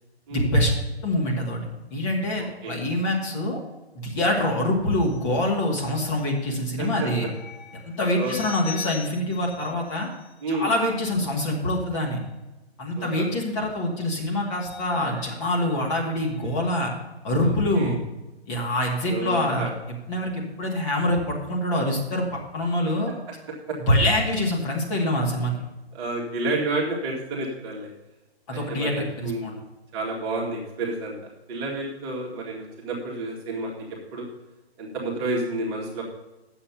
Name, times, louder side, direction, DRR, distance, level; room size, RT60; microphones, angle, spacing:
voice 1, 0.3-0.7 1.0-1.6 1.9-3.6 4.0-7.3 8.0-10.1 10.5-12.2 12.8-16.9 17.2-18.0 18.5-19.7 20.1-23.1 23.8-25.5 28.5-29.5, left 1 dB, 30° left, -2 dB, 2.3 m, -25 dB
voice 2, 2.4-2.8 4.4-4.6 6.8-7.1 8.1-8.3 10.4-10.7 13.0-13.2 17.4-17.9 19.1-19.7 23.7-23.8 25.9-27.9 28.5-29.6 29.9-31.1 31.5-33.8 34.1-34.3 34.8-36.0, right 2 dB, 25° right, -2 dB, 1.8 m, -30 dB
sound 1, 4.9-10.6 13.0-13.1 13.5-16.7 21.0-21.2, left 6 dB, 45° left, 1.3 m, -44 dB
8.7 x 7.2 x 6.9 m, 1.1 s
figure-of-eight pair, 135°, 32 cm